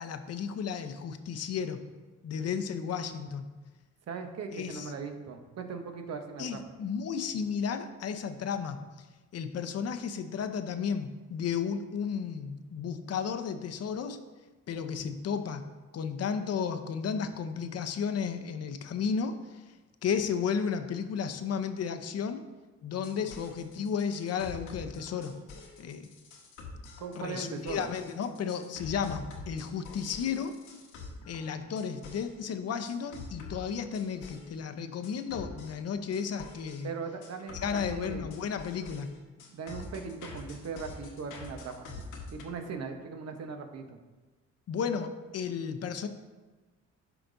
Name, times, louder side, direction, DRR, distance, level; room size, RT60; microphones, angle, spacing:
voice 1, 0.0-1.8 2.2-3.5 4.5-4.9 6.4-9.1 9.3-14.2 14.7-15.6 15.9-19.6 20.0-22.5 22.8-25.3 25.8-26.1 27.1-30.6 31.3-36.9 37.5-39.1 44.7-46.1, left 6 dB, 55° left, 8 dB, 0.7 m, -33 dB
voice 2, 4.1-6.6 27.0-27.9 36.8-38.3 39.5-41.9 42.3-44.0, right 5 dB, 55° right, 5 dB, 1.0 m, -39 dB
sound 1, 22.9-32.4 32.9-34.5 35.0-36.8 37.2-42.4, left 3 dB, 90° left, 1.4 m, -46 dB
12.5 x 5.0 x 2.7 m, 1.2 s
cardioid pair, 90°, 30 cm